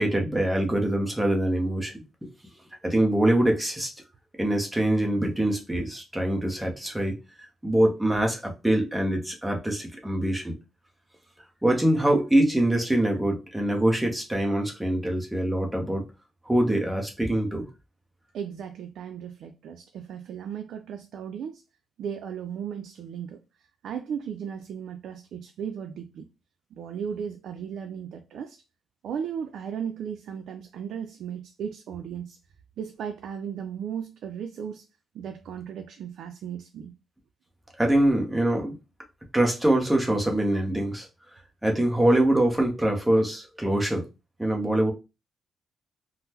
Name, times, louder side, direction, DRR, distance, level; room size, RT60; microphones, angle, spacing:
voice 1, 0.0-1.9 2.8-3.9 4.4-7.2 7.6-10.5 11.6-16.0 16.5-17.6 37.8-38.8 39.3-41.1 41.6-44.1 44.4-44.9, right 1 dB, 5° right, 0.7 m, -24 dB
voice 2, 18.3-21.6 22.0-23.4 23.8-26.2 26.7-28.6 29.0-32.4 32.8-34.8 35.1-36.9, right 8 dB, 70° right, 0.3 m, -36 dB
3.6 x 2.0 x 2.8 m
cardioid pair, 160°, 0 cm